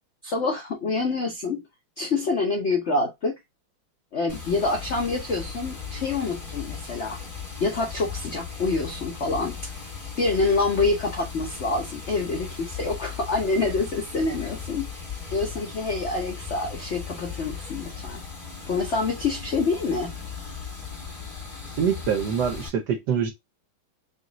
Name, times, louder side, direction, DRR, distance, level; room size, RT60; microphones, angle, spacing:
voice 1, 0.2-1.6 2.0-3.4 4.1-7.2 7.6-9.7 10.2-14.9 15.3-18.2 18.7-20.1, left 3 dB, 70° left, 0.6 m, -26 dB
Water, 4.3-22.7, left 6 dB, 20° left, 1.2 m, -37 dB
voice 2, 21.8-23.3, right 7 dB, 65° right, 1.1 m, -24 dB
3.9 x 2.4 x 3.8 m
omnidirectional pair, 2.4 m